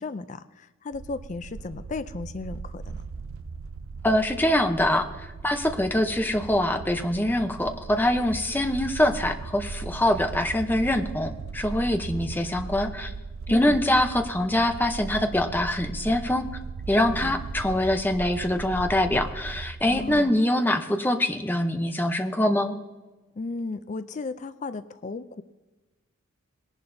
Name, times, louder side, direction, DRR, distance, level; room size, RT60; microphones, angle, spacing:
voice 1, 0.0-3.0 13.5-13.8 17.1-17.4 19.9-20.4 23.4-25.4, left 3 dB, 35° left, 13 dB, 0.4 m, -35 dB
sound 1, 0.9-20.2, right 4 dB, 80° right, 0.4 m, -38 dB
voice 2, 4.0-13.1 13.5-16.5 16.9-22.7, left 1 dB, 10° left, 6 dB, 0.7 m, -24 dB
20.0 x 11.0 x 2.7 m, 1.2 s
head